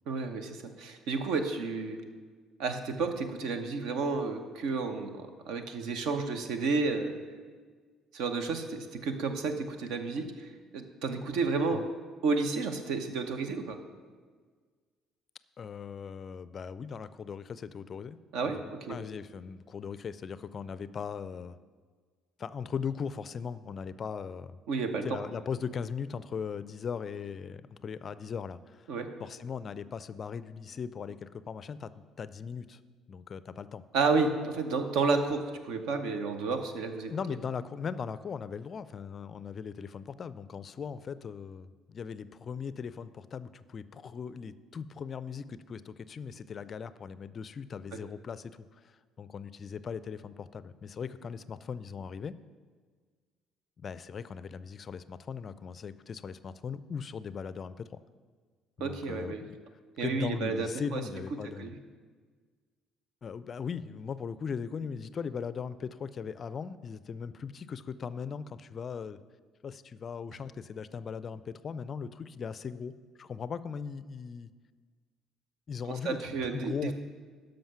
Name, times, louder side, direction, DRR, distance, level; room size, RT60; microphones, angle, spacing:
voice 1, 0.1-2.0 2.6-7.1 8.1-11.8 12.2-13.8 18.3-19.0 24.7-25.1 28.9-29.1 33.9-37.1 47.9-48.0 58.8-59.4 60.0-61.0 61.6-61.8 76.0-76.9, right 4 dB, 60° right, 7 dB, 0.8 m, -31 dB
voice 2, 15.6-18.2 18.5-21.6 22.4-24.6 25.0-28.9 29.2-31.9 32.2-32.8 33.1-33.8 37.1-52.4 53.8-57.9 58.8-59.6 60.0-61.7 63.2-69.2 69.6-74.5 75.7-76.9, left 6 dB, 40° left, 15 dB, 0.4 m, -39 dB
12.5 x 5.2 x 5.8 m, 1.5 s
figure-of-eight pair, 50°, 0 cm